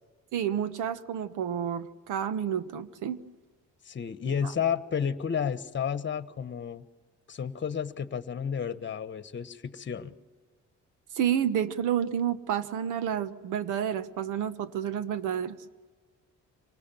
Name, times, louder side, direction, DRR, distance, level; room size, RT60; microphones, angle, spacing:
voice 1, 0.3-3.2 4.3-4.5 11.1-15.6, right 9 dB, 85° right, 12 dB, 1.2 m, -30 dB
voice 2, 3.8-6.8 7.3-10.1, left 7 dB, 40° left, 12 dB, 1.3 m, -31 dB
26.0 x 20.0 x 7.5 m, 1.4 s
cardioid pair, 90°, 30 cm